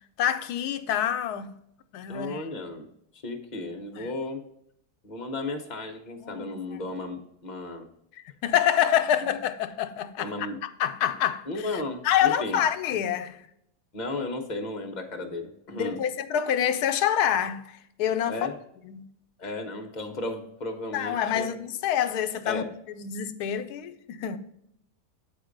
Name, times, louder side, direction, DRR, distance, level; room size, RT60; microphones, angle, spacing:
voice 1, 0.2-1.6 1.9-2.4 3.9-4.1 6.2-6.6 8.4-13.4 15.7-17.7 18.0-18.4 18.8-19.1 20.9-24.4, left 10 dB, 80° left, 1.1 m, -27 dB
voice 2, 2.1-2.9 3.2-4.4 5.0-7.9 9.3-9.4 10.2-10.6 11.5-12.6 13.9-16.0 18.3-18.5 19.4-21.5 22.4-22.7, left 2 dB, 35° left, 0.8 m, -34 dB
8.0 x 4.4 x 5.1 m
omnidirectional pair, 1.7 m